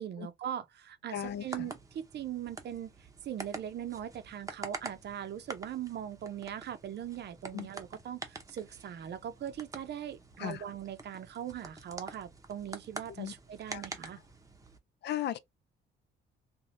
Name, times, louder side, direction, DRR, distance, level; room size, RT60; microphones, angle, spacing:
voice 1, 0.0-2.9 3.2-14.2, right 10 dB, 60° right, 0.6 m, -40 dB
voice 2, 1.1-1.7 7.5-7.7 10.4-10.6 13.2-13.3 13.7-13.8 15.0-15.4, left 11 dB, 60° left, 0.4 m, -36 dB
sound 1, 1.2-14.8, right 3 dB, 15° right, 0.7 m, -47 dB
3.3 x 2.2 x 2.5 m
cardioid pair, 90°, 20 cm